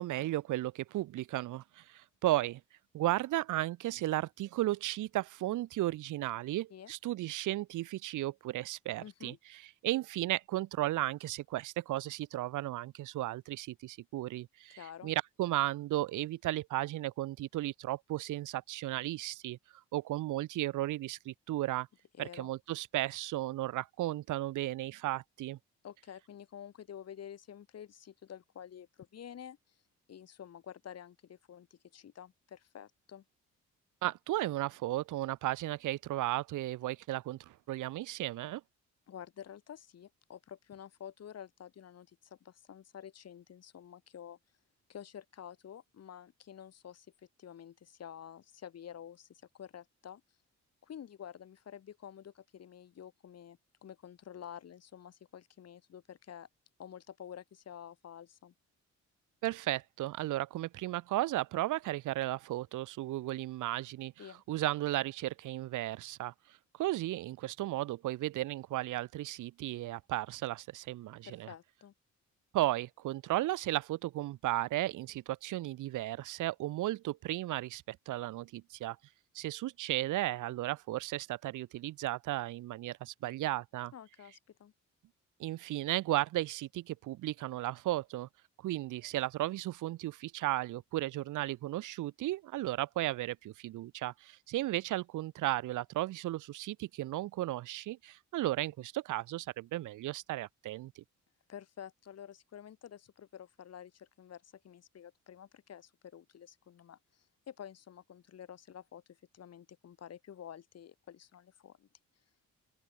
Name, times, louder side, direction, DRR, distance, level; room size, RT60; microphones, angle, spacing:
voice 1, 0.0-2.6 2.9-19.6 19.9-21.9 22.2-25.6 34.0-38.6 59.4-66.3 66.7-71.5 72.5-79.0 79.3-83.9 85.4-88.3 88.6-101.0, right 16 dB, 80° right, 1.1 m, -35 dB
voice 2, 9.0-9.4 14.8-15.1 22.1-22.5 25.8-29.6 30.1-33.2 39.1-44.4 44.9-47.1 47.4-50.2 50.8-56.5 56.8-58.5 64.2-64.4 71.2-71.9 83.9-84.7 101.5-111.9, left 9 dB, 55° left, 2.6 m, -50 dB
open air
cardioid pair, 90°, 30 cm